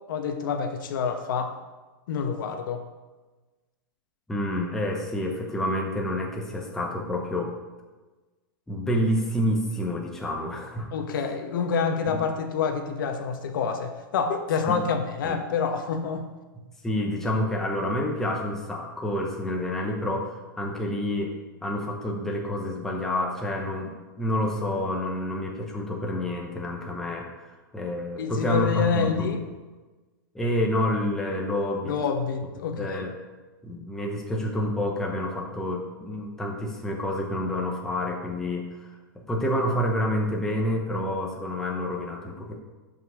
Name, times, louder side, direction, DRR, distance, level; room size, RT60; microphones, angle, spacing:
voice 1, 0.1-1.6 2.1-2.8 10.9-16.3 28.2-29.4 31.9-33.1, left 6 dB, 60° left, 6 dB, 1.1 m, -27 dB
voice 2, 4.3-7.5 8.7-10.9 12.1-12.2 14.7-14.8 15.2-15.3 16.8-21.3 21.6-27.3 27.7-29.3 30.3-31.9 32.8-33.1 33.6-39.0 39.3-42.6, left 1 dB, 5° left, -1 dB, 0.8 m, -28 dB
11.5 x 5.5 x 4.8 m, 1.2 s
supercardioid pair, 165°, 12 cm